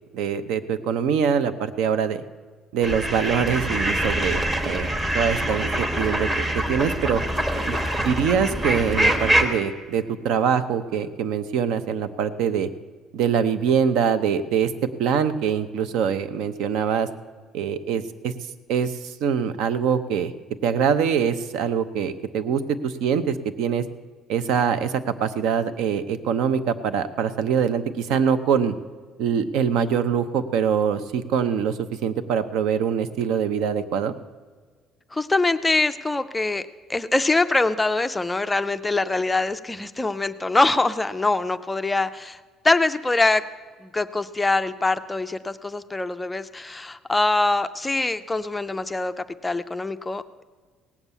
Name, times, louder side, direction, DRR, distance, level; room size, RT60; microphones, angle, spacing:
voice 1, 0.1-2.2 2.7-4.9 5.1-7.2 7.6-12.7 13.1-14.7 15.0-17.1 17.5-18.3 18.7-20.3 20.6-23.8 24.3-28.7 29.2-34.1, right 7 dB, 70° right, 12 dB, 0.8 m, -24 dB
sound 1, 2.8-9.4, right 1 dB, 20° right, 1.2 m, -24 dB
voice 2, 35.1-42.4 42.6-43.4 43.8-50.4, left 2 dB, 10° left, 10 dB, 0.3 m, -23 dB
17.5 x 7.3 x 8.2 m, 1.6 s
cardioid pair, 175°, 0 cm